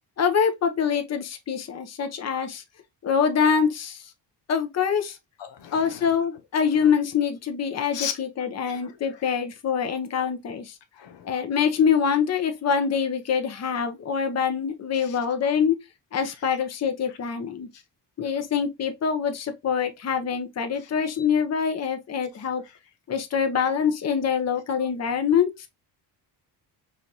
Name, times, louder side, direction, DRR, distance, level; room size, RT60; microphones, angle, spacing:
voice 1, 0.2-2.6 3.0-4.0 4.5-5.2 5.7-10.7 11.2-15.8 16.1-17.7 18.2-22.6 23.1-25.5, left 7 dB, 35° left, 0.8 m, -25 dB
voice 2, 5.4-6.1 7.9-8.2 8.6-8.9 11.0-11.3 14.9-15.2 17.7-17.8 20.8-20.9 23.6-23.7, left 9 dB, 75° left, 0.9 m, -36 dB
5.0 x 2.6 x 2.9 m
cardioid pair, 95°, 43 cm